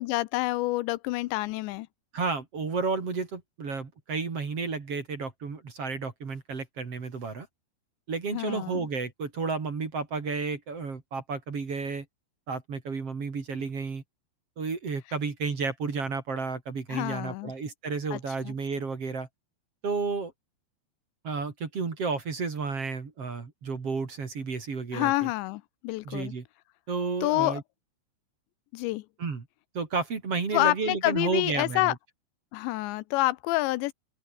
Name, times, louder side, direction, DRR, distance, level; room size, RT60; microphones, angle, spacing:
voice 1, 0.0-1.9 8.3-8.9 16.9-17.5 18.1-18.2 18.4-18.5 24.9-26.3 27.2-27.6 28.7-29.1 30.5-31.9 32.5-33.9, left 19 dB, 80° left, 2.8 m, -28 dB
voice 2, 2.1-7.5 8.1-12.1 12.5-14.0 14.6-19.3 19.8-20.3 21.2-25.3 26.1-26.4 26.9-27.6 29.2-29.5 29.7-31.9, right 4 dB, 35° right, 3.6 m, -32 dB
open air
omnidirectional pair, 5.2 m